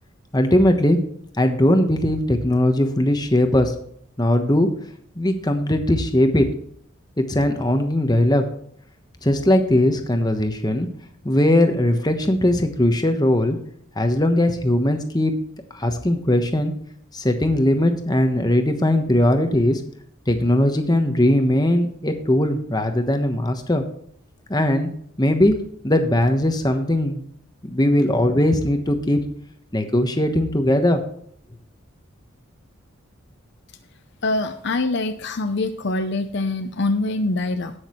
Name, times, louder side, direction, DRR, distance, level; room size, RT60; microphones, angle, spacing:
voice 1, 0.3-1.0 1.4-3.7 4.2-4.7 5.2-6.5 7.2-8.4 9.2-10.9 11.2-13.6 14.0-15.3 15.7-16.7 17.1-19.8 20.3-23.8 24.5-24.9 25.2-25.6 25.8-27.2 27.6-29.2 29.7-31.0, left 1 dB, 20° left, 6 dB, 1.2 m, -19 dB
voice 2, 34.2-37.7, left 2 dB, 55° left, 8 dB, 0.7 m, -24 dB
18.0 x 6.4 x 3.1 m, 0.66 s
head